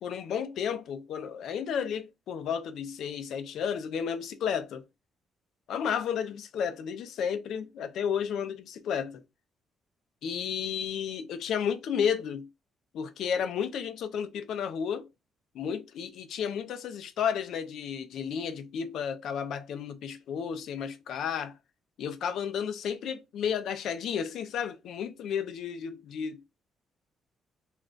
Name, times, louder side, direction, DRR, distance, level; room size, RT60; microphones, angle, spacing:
voice 1, 0.0-4.8 5.7-9.2 10.2-12.5 12.9-15.1 15.5-21.5 22.0-26.4, left 7 dB, 75° left, 0.4 m, -32 dB
2.5 x 2.2 x 3.6 m
cardioid pair, 90°, 0 cm